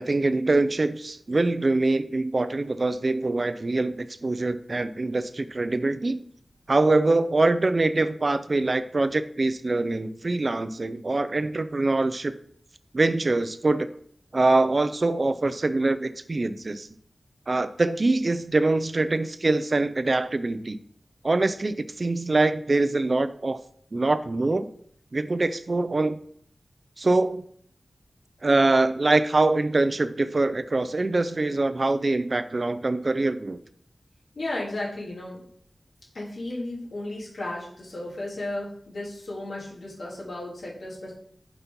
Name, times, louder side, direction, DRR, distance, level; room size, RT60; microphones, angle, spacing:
voice 1, 0.0-6.2 6.7-12.3 12.9-13.9 14.3-16.9 17.5-20.8 21.2-23.6 23.9-24.7 25.1-26.2 27.0-27.4 28.4-33.6, right 2 dB, 45° right, 12 dB, 0.4 m, -24 dB
voice 2, 34.4-35.4 36.1-41.1, left 1 dB, 85° left, -5 dB, 2.6 m, -34 dB
5.9 x 4.1 x 5.2 m, 0.64 s
wide cardioid pair, 95°, 0 cm